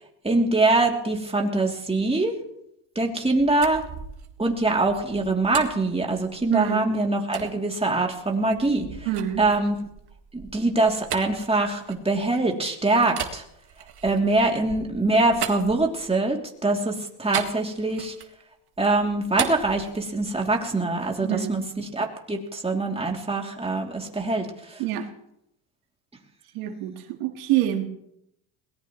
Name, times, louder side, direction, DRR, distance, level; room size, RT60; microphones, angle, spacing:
voice 1, 0.2-2.4 2.9-3.8 4.4-9.1 9.4-9.7 10.3-13.4 14.0-18.1 18.8-24.8, right 2 dB, 10° right, 0 dB, 3.0 m, -24 dB
sound 1, 3.2-6.7 7.3-7.5 8.1-12.5 13.1-16.3 17.3-18.4 18.8-20.5, right 9 dB, 50° right, 1.9 m, -37 dB
voice 2, 6.5-6.8 9.1-9.4 21.2-21.6 24.8-25.1 26.5-27.9, right 12 dB, 80° right, 5 dB, 1.9 m, -26 dB
21.5 x 18.5 x 3.2 m, 0.78 s
supercardioid pair, 85°, 50 cm